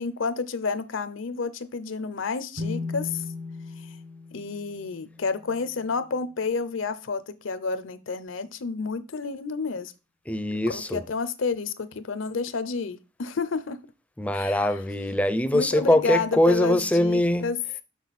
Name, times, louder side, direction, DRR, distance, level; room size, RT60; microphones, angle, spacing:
voice 1, 0.0-3.2 3.8-3.9 4.3-9.9 10.7-13.8 14.3-14.6 15.5-17.6, left 4 dB, 75° left, 0.7 m, -30 dB
sound 1, 2.6-6.1, left 3 dB, 65° right, 0.9 m, -37 dB
voice 2, 10.3-11.0 14.2-17.5, left 1 dB, 5° left, 0.4 m, -22 dB
6.2 x 6.1 x 4.1 m
head